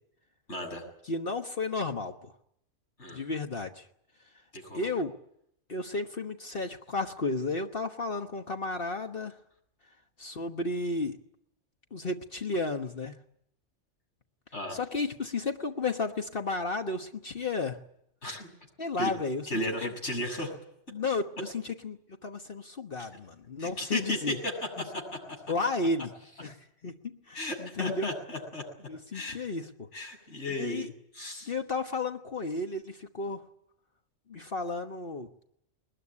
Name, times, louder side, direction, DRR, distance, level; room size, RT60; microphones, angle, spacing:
voice 1, 0.5-0.8 3.0-3.2 4.5-4.9 14.5-14.8 18.2-18.5 19.0-19.1 19.5-20.5 23.6-24.2 24.4-24.5 27.3-29.4 29.9-31.5, equal, 70° left, 1 dB, 7.2 m, -35 dB
voice 2, 1.0-2.4 3.1-3.9 4.7-5.1 5.7-9.4 10.2-11.2 11.9-13.2 14.7-17.8 18.8-19.9 20.9-24.4 25.5-26.1 26.4-26.6 26.8-28.1 28.9-29.9 30.6-30.9 31.4-33.4 34.3-35.3, left 3 dB, 50° left, 5 dB, 1.4 m, -33 dB
21.5 x 20.5 x 9.8 m, 0.75 s
omnidirectional pair, 1.3 m